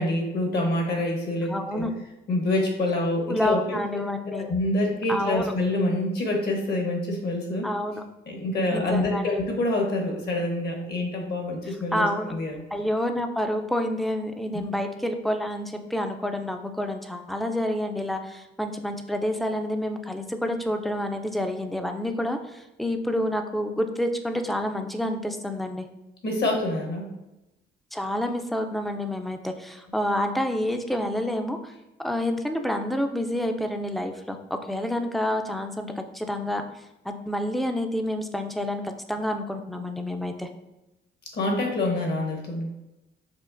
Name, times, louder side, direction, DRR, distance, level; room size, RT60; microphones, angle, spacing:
voice 1, 0.0-1.8 2.3-3.8 4.2-7.7 8.3-12.5 14.5-14.6 26.2-27.1 41.3-42.7, left 1 dB, 55° left, 1 dB, 1.1 m, -26 dB
voice 2, 1.5-1.9 3.3-4.5 5.1-5.5 7.6-8.0 8.7-9.3 11.9-12.3 12.7-25.9 27.9-31.7 32.0-36.6 37.0-40.5, left 1 dB, ahead, 5 dB, 0.3 m, -28 dB
5.2 x 2.4 x 2.5 m, 0.97 s
cardioid pair, 90°, 20 cm